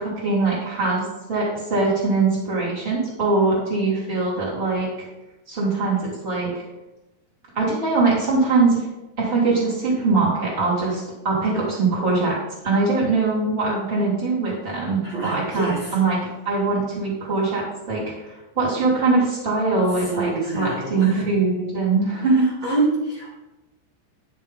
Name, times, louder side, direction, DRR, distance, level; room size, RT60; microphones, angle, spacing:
voice 1, 0.0-4.9 5.5-6.6 7.5-8.8 9.2-12.4 12.6-16.2 16.4-22.5, right 3 dB, 15° right, -7 dB, 2.5 m, -22 dB
voice 2, 15.0-16.0 19.9-21.3 22.3-23.4, right 3 dB, 55° right, -7 dB, 1.8 m, -26 dB
11.5 x 7.1 x 3.8 m, 1.0 s
omnidirectional pair, 6.0 m